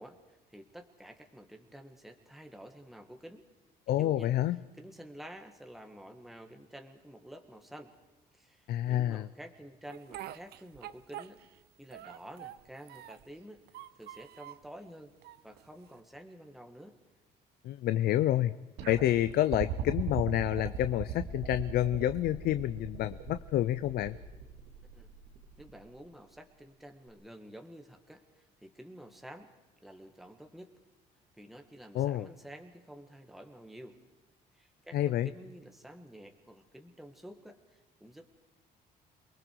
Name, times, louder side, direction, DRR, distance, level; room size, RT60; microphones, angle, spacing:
voice 1, 0.0-3.4 3.9-4.3 4.7-7.9 8.3-11.4 11.8-13.6 13.9-15.1 15.4-16.9 24.9-25.1 25.6-29.5 29.8-30.7 31.4-34.0 34.5-38.3, right 1 dB, ahead, 4 dB, 1.7 m, -50 dB
voice 2, 3.9-4.6 8.7-9.3 17.6-18.5 18.9-24.2 31.9-32.3 34.9-35.3, left 13 dB, 65° left, 13 dB, 0.6 m, -28 dB
Speech, 9.9-11.6 11.9-13.3 13.7-14.7 15.2-16.0, right 12 dB, 70° right, 0.8 m, -46 dB
sound 1, 18.8-25.9 27.1-27.2, right 9 dB, 85° right, 2.5 m, -39 dB
28.5 x 20.0 x 4.7 m, 1.1 s
cardioid pair, 110°, 17 cm